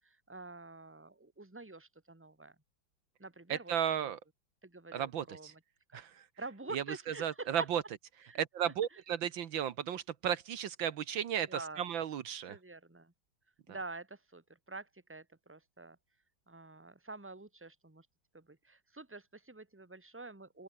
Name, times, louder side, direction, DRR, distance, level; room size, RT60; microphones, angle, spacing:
voice 1, 0.0-2.5 3.2-4.1 4.6-5.6 5.9-6.0 6.4-7.5 8.3-8.4 11.5-11.8 12.5-13.1 13.7-16.0 16.5-18.1 18.3-20.6, right 3 dB, 5° right, 2.1 m, -48 dB
voice 2, 3.5-4.2 4.9-5.5 5.9-6.1 6.7-6.8 7.2-7.8 8.4-12.6, right 9 dB, 75° right, 1.8 m, -34 dB
open air
omnidirectional pair, 2.2 m